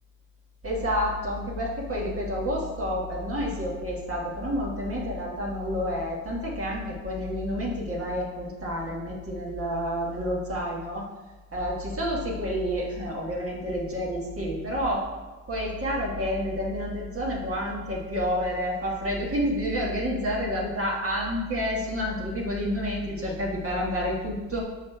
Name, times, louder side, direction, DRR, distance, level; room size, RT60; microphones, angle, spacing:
voice 1, 0.6-11.0 11.5-15.0 15.5-24.6, equal, 45° right, -3 dB, 1.5 m, -29 dB
5.6 x 5.1 x 4.4 m, 1.2 s
cardioid pair, 75°, 31 cm